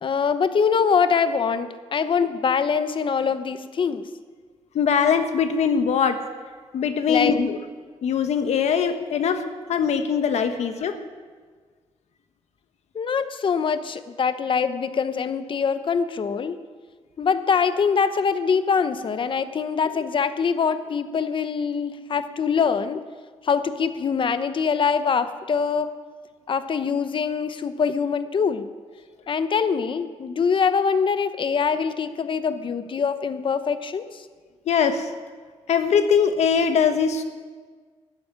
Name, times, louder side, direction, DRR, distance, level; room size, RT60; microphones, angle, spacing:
voice 1, 0.0-4.0 7.1-7.4 12.9-16.6 17.2-23.0 23.4-25.9 26.5-28.7 29.3-34.2, left 6 dB, 50° left, 11 dB, 0.9 m, -23 dB
voice 2, 4.7-6.2 6.7-7.6 8.0-9.4 9.7-11.0 34.7-35.1 35.7-37.2, left 6 dB, 80° left, 8 dB, 1.4 m, -21 dB
14.0 x 9.2 x 9.9 m, 1.5 s
cardioid pair, 110°, 11 cm